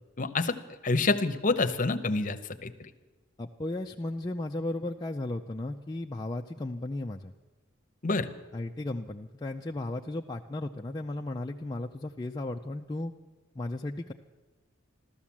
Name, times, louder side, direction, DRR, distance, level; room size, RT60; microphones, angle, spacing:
voice 1, 0.2-0.6 0.8-2.7 8.0-8.3, left 3 dB, 40° left, 10 dB, 0.8 m, -27 dB
voice 2, 3.4-7.3 8.5-13.1 13.6-14.1, left 2 dB, 20° left, 1 dB, 0.4 m, -35 dB
14.5 x 13.0 x 7.3 m, 1.2 s
head